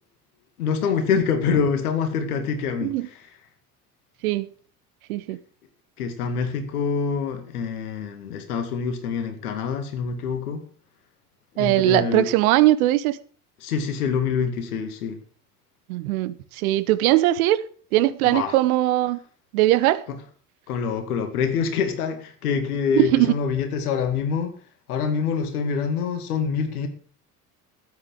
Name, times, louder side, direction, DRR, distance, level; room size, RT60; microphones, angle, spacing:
voice 1, 0.6-3.3 6.0-10.6 11.5-12.3 13.6-15.2 18.2-18.6 20.1-20.2 20.7-24.5 24.9-26.9, left 6 dB, 70° left, 2.2 m, -25 dB
voice 2, 11.6-13.2 15.9-17.6 17.9-19.2 19.5-20.0 22.9-23.3, right 15 dB, 65° right, 1.1 m, -20 dB
13.0 x 8.7 x 6.5 m
figure-of-eight pair, 60°, 46 cm